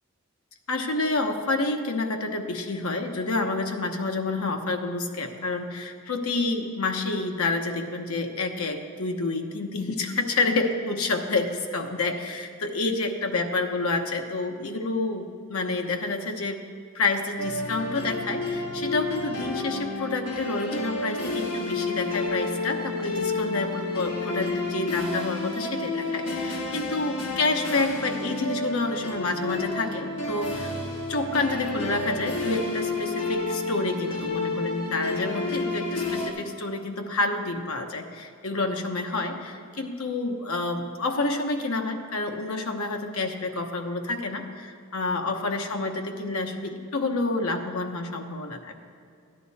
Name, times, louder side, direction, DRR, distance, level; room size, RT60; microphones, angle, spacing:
voice 1, 0.7-16.6 16.9-30.7 31.1-48.7, left 3 dB, 85° left, 4 dB, 1.0 m, -28 dB
sound 1, 17.4-36.3, left 2 dB, 60° left, 2.0 m, -30 dB
13.0 x 10.0 x 4.2 m, 2.4 s
head